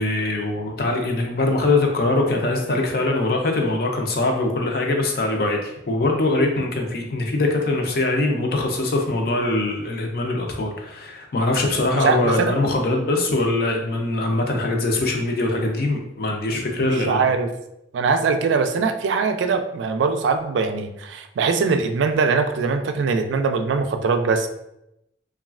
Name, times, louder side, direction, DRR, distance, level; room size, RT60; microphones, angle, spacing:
voice 1, 0.0-17.2, left 2 dB, 55° left, 2 dB, 0.5 m, -22 dB
voice 2, 11.9-12.5 16.5-17.5 17.9-24.5, right 4 dB, 85° right, 7 dB, 0.3 m, -22 dB
3.1 x 2.3 x 2.4 m, 0.84 s
head